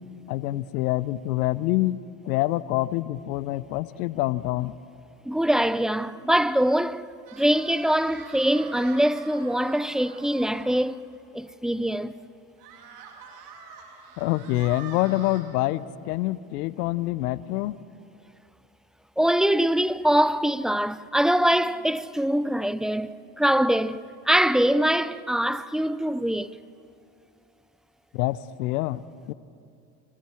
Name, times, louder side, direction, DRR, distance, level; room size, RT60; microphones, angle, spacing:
voice 1, 0.3-2.0 2.2-4.7 14.2-17.8 28.1-29.3, left 17 dB, 85° left, 0.7 m, -26 dB
voice 2, 5.3-11.1 11.3-12.2 19.2-26.6, equal, ahead, 0.6 m, -23 dB
sound 1, 7.3-10.7 11.1-11.2 11.6-11.7 12.6-15.4, right 6 dB, 85° right, 2.8 m, -45 dB
29.5 x 25.5 x 4.4 m
hypercardioid pair, 60°, 45 cm